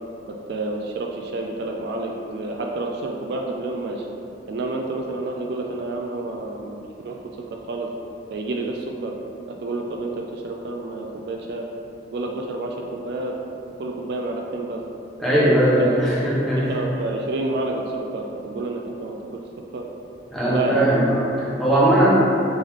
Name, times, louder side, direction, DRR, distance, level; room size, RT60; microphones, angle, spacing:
voice 1, 0.2-4.1 4.5-6.8 7.0-7.2 7.7-7.9 8.3-9.1 9.6-11.7 12.1-13.3 13.8-14.8 15.4-15.6 16.6-19.2 19.7-19.8 20.5-20.9, right 2 dB, 65° right, 1 dB, 0.3 m, -29 dB
voice 2, 15.2-16.6 20.3-22.1, right 1 dB, ahead, -10 dB, 0.9 m, -19 dB
3.7 x 3.0 x 3.5 m, 2.7 s
head